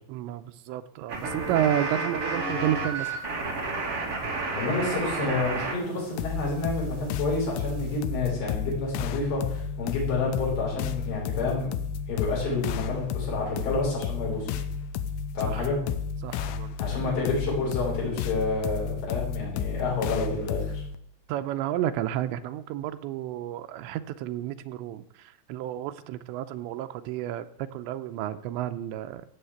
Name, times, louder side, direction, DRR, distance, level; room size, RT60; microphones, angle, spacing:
voice 1, 0.1-3.1 15.4-15.7 16.2-16.7 21.3-29.3, right 12 dB, 85° right, 10 dB, 2.9 m, -31 dB
sound 1, 1.1-5.7 6.0-8.0, right 3 dB, 35° right, 3.3 m, -32 dB
voice 2, 4.5-11.7 12.1-14.6 15.3-15.8 16.8-20.8, left 3 dB, 65° left, -6 dB, 7.9 m, -29 dB
sound 2, 6.2-21.0, left 6 dB, 85° left, 3.2 m, -32 dB
16.0 x 7.2 x 8.0 m, 0.74 s
omnidirectional pair, 5.3 m